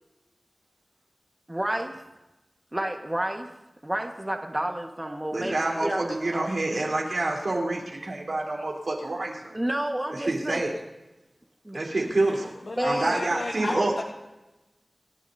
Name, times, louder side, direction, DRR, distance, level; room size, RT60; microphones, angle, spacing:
voice 1, 1.5-2.0 2.7-3.5 3.8-6.5 9.5-10.6 11.6-11.8 12.8-13.2, right 1 dB, 20° right, 2 dB, 1.5 m, -30 dB
voice 2, 5.3-9.6 10.2-10.7 11.7-12.5 12.8-13.9, right 2 dB, 80° right, -1 dB, 3.7 m, -27 dB
voice 3, 12.7-14.0, left 2 dB, 75° left, -1 dB, 1.4 m, -32 dB
28.0 x 12.5 x 2.8 m, 1.0 s
wide cardioid pair, 65°, 0 cm